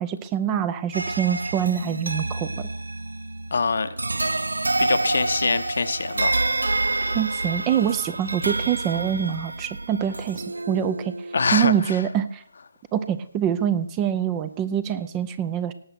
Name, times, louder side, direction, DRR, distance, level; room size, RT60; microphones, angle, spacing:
voice 1, 0.0-2.7 7.0-11.2 11.5-12.4 12.9-15.7, right 9 dB, 20° right, 14 dB, 0.6 m, -25 dB
sound 1, 0.9-11.9, right 2 dB, 75° right, 0.4 m, -28 dB
voice 2, 3.5-3.9 4.8-6.4 11.3-12.0, left 4 dB, 60° left, 11 dB, 0.9 m, -24 dB
18.0 x 6.7 x 6.0 m, 0.67 s
figure-of-eight pair, 150°, 0 cm